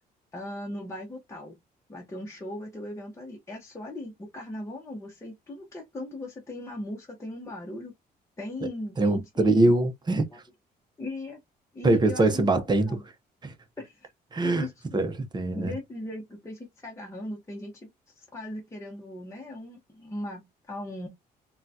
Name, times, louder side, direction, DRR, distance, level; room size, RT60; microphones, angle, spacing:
voice 1, 0.3-1.6 1.9-7.9 8.4-9.8 10.3-10.4 11.0-11.4 11.7-13.0 13.8-14.1 14.4-15.0 15.5-21.1, left 1 dB, 15° left, 0.9 m, -38 dB
voice 2, 9.0-10.3 11.8-13.0 13.4-13.5 14.3-14.6 14.9-15.7, right 2 dB, 25° right, 0.8 m, -23 dB
3.7 x 2.3 x 2.7 m
cardioid pair, 110°, 17 cm